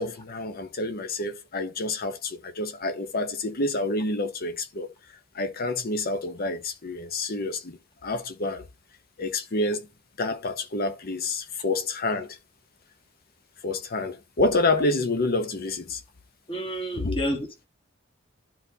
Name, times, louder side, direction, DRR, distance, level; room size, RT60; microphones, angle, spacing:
voice 1, 0.0-4.9 5.3-8.6 9.2-9.9 10.2-12.4 13.6-16.0 16.9-17.2, left 2 dB, 50° left, 0.9 m, -28 dB
voice 2, 16.5-17.7, equal, 25° left, 1.4 m, -30 dB
11.5 x 4.0 x 2.8 m
head